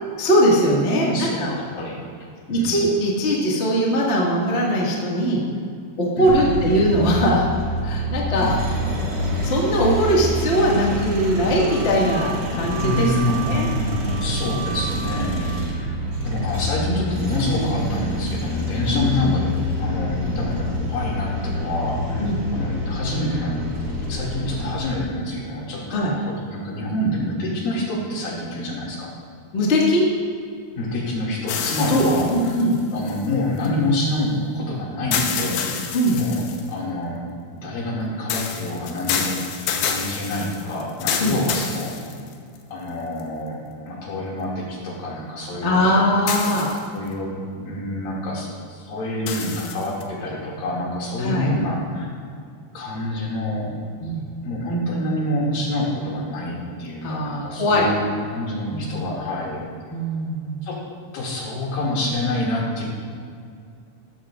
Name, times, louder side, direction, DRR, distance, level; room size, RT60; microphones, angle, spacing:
voice 1, 0.2-1.5 2.5-5.4 6.0-7.5 7.8-8.6 9.4-13.1 13.4-13.7 15.8-16.3 18.9-19.3 22.2-22.4 25.9-26.1 29.5-30.1 31.9-32.0 32.3-32.8 35.9-36.2 41.2-41.4 45.6-46.7 51.2-51.5 54.0-54.2 57.0-57.9 58.7-59.1 59.9-60.7, equal, 40° left, -4 dB, 0.9 m, -21 dB
voice 2, 0.9-2.0 2.5-2.8 6.2-6.7 8.4-9.0 12.8-15.9 16.2-19.5 19.8-22.2 22.5-23.6 24.1-25.8 26.2-29.1 30.7-32.6 32.9-36.4 36.7-37.2 37.5-41.9 42.7-43.6 43.8-45.8 46.4-46.5 46.9-52.1 52.7-53.7 54.4-59.6 60.6-60.8 61.1-62.8, left 1 dB, 65° left, -4 dB, 4.0 m, -27 dB
sound 1, 6.3-24.8, left 1 dB, 40° right, 2.2 m, -27 dB
Wind instrument woodwind instrument, 11.7-15.7, right 7 dB, 60° right, 3.4 m, -35 dB
sound 2, 31.5-33.7 35.1-36.7 38.3-42.6 43.2-43.3 46.3-47.1 49.3-50.0, left 7 dB, 80° left, 2.8 m, -28 dB
15.0 x 13.0 x 2.5 m, 2.2 s
omnidirectional pair, 4.6 m